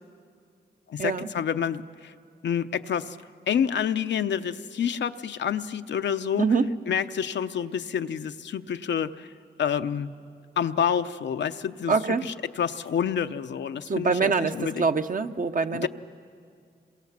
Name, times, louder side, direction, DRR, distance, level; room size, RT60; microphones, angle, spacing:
voice 1, 0.9-2.1 2.4-3.2 3.5-6.5 6.9-9.3 9.6-10.1 10.6-14.9 15.7-15.9, left 8 dB, 85° left, 9 dB, 0.7 m, -28 dB
voice 2, 6.4-6.7 11.9-12.3 13.9-15.9, right 5 dB, 50° right, 8 dB, 0.9 m, -24 dB
27.0 x 23.5 x 7.4 m, 2.3 s
cardioid pair, 60°, 18 cm